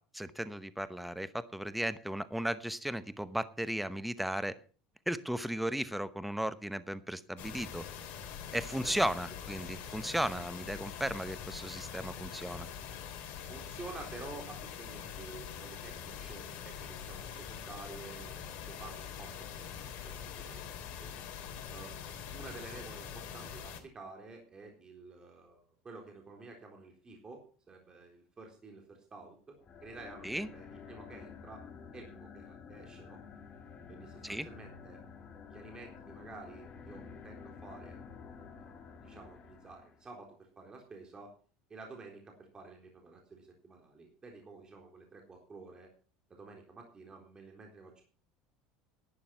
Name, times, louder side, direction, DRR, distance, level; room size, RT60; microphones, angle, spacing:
voice 1, 0.1-4.5 5.1-7.8 8.5-12.7 30.2-30.5 34.2-34.5, right 1 dB, 5° right, 13 dB, 0.9 m, -35 dB
sound 1, 7.4-23.8, left 8 dB, 60° left, 3.5 m, -44 dB
voice 2, 8.8-9.1 13.5-18.3 18.7-21.1 21.7-29.6 29.8-31.6 31.9-33.2 33.9-35.0 35.5-38.0 38.6-38.7 39.0-41.3 41.7-45.9 46.3-48.0, right 3 dB, 25° right, 2 dB, 3.8 m, -50 dB
sound 2, 29.6-40.1, left 6 dB, 35° left, 2.5 m, -50 dB
11.5 x 9.7 x 5.7 m, 0.40 s
supercardioid pair, 100°, 3 cm